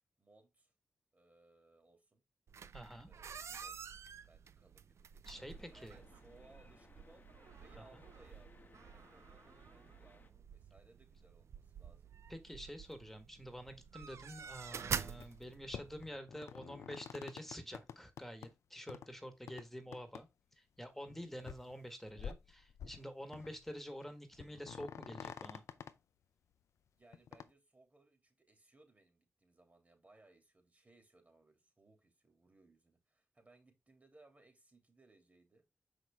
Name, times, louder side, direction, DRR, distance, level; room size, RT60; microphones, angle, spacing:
voice 1, 0.2-0.7 1.1-2.2 3.1-3.9 4.2-5.2 5.7-7.2 7.6-12.1 26.9-35.6, right 2 dB, 35° right, 2.9 m, -66 dB
sound 1, 2.5-16.1, right 7 dB, 75° right, 0.5 m, -48 dB
voice 2, 2.7-3.1 5.2-6.0 7.8-8.0 12.3-20.3 20.5-25.6, equal, 5° left, 1.6 m, -48 dB
sound 2, 5.3-10.3, left 3 dB, 40° left, 1.2 m, -64 dB
sound 3, 15.1-15.4 15.7-18.5 18.9-19.1 19.5-19.6 19.9-20.2 20.5-20.6 21.1-21.2 21.4-21.7 22.1-23.0 23.3-23.8 24.0-24.1 24.4-25.9 27.1-27.5, left 8 dB, 85° left, 0.5 m, -49 dB
6.0 x 5.1 x 3.5 m
cardioid pair, 50°, 5 cm